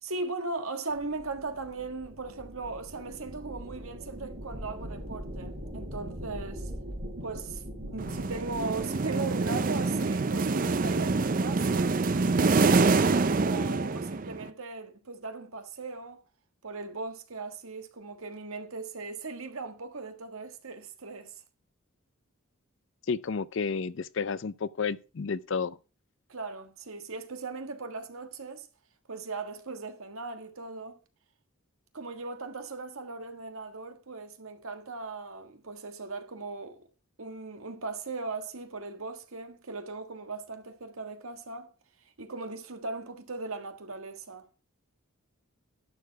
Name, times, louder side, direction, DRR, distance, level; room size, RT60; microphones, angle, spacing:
voice 1, 0.0-6.7 7.2-12.1 13.4-16.2 16.6-21.3 26.3-28.7 29.1-31.0 31.9-36.9 37.2-41.7 42.2-44.5, right 3 dB, 75° right, 1.5 m, -38 dB
sound 1, 0.9-9.0, equal, 60° right, 4.5 m, -41 dB
voice 2, 7.9-8.3 23.1-25.8, left 5 dB, 55° left, 0.5 m, -32 dB
sound 2, 8.0-14.5, right 3 dB, 40° right, 0.5 m, -26 dB
11.5 x 6.8 x 4.5 m
head